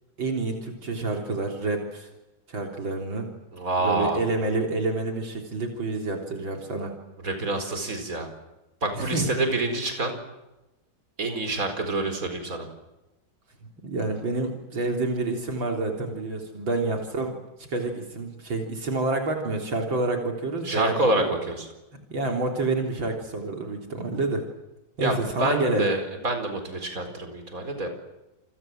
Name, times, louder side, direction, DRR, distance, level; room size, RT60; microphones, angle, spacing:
voice 1, 0.2-2.1 2.5-3.3 3.8-6.9 8.9-9.3 13.8-21.3 22.1-24.4 25.0-25.9, right 2 dB, 75° right, 2 dB, 4.2 m, -28 dB
voice 2, 3.5-4.2 7.2-8.3 8.8-10.1 11.2-12.7 20.6-21.7 25.0-27.9, right 2 dB, 45° right, 6 dB, 5.0 m, -27 dB
28.5 x 24.0 x 7.6 m, 1.0 s
omnidirectional pair, 2.1 m